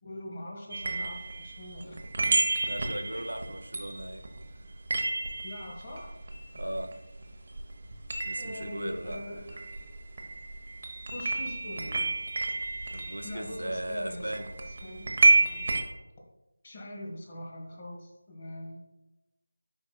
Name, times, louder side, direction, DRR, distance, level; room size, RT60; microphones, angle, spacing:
voice 1, 0.0-2.0 2.3-2.4 5.4-6.1 8.4-9.7 11.1-12.2 13.2-14.5 14.8-15.6 16.6-18.8, left 1 dB, 30° left, 1.3 m, -42 dB
sound 1, 0.7-7.3 7.6-15.8, right 2 dB, 40° right, 0.8 m, -30 dB
voice 2, 2.7-4.3 6.5-7.0 8.2-9.2 12.9-14.6, right 1 dB, 85° right, 0.8 m, -37 dB
10.5 x 4.9 x 2.2 m
figure-of-eight pair, 165°, 0 cm